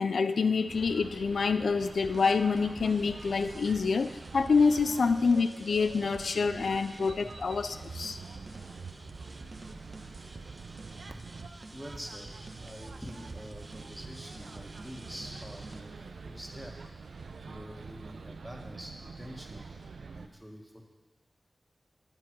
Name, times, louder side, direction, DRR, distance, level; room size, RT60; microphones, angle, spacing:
voice 1, 0.0-8.2, left 4 dB, 80° left, 10 dB, 0.3 m, -27 dB
sound 1, 0.7-20.3, right 4 dB, 85° right, 0.5 m, -46 dB
sound 2, 1.9-15.8, right 2 dB, 45° right, 1.0 m, -49 dB
voice 2, 11.7-12.3 12.6-15.9 16.2-16.7 17.4-19.7 20.1-20.8, equal, 5° right, 1 dB, 1.7 m, -46 dB
8.7 x 7.4 x 6.0 m, 1.2 s
cardioid pair, 40°, 0 cm